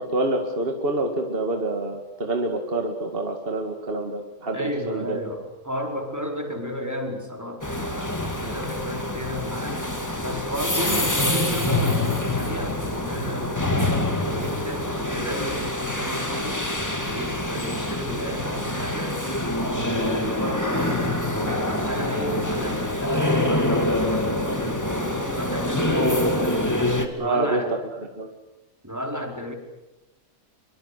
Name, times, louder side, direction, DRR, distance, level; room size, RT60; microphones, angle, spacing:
voice 1, 0.0-5.2 27.2-27.6 28.2-28.3, right 2 dB, 40° right, 4 dB, 2.4 m, -27 dB
voice 2, 4.5-9.8 10.2-13.6 14.1-16.6 17.0-19.2 19.7-26.6 27.2-27.7 28.8-29.5, equal, 10° right, 2 dB, 4.5 m, -32 dB
sound 1, 7.6-27.1, left 1 dB, 10° left, 2.5 m, -25 dB
25.0 x 24.0 x 8.3 m, 0.98 s
omnidirectional pair, 1.5 m